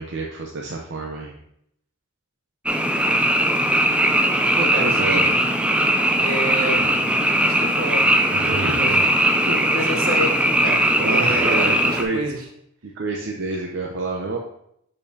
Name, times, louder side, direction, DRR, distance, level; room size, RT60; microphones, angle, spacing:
voice 1, 0.0-1.3 4.8-5.3 8.3-9.1 11.0-12.3 12.9-14.4, right 3 dB, 55° right, 0 dB, 0.6 m, -28 dB
Frog, 2.7-12.0, right 1 dB, 5° right, 0.4 m, -19 dB
voice 2, 4.5-5.4 6.2-8.9 9.4-12.4, right 1 dB, 70° right, 2 dB, 1.1 m, -29 dB
6.6 x 5.3 x 2.8 m, 0.73 s
head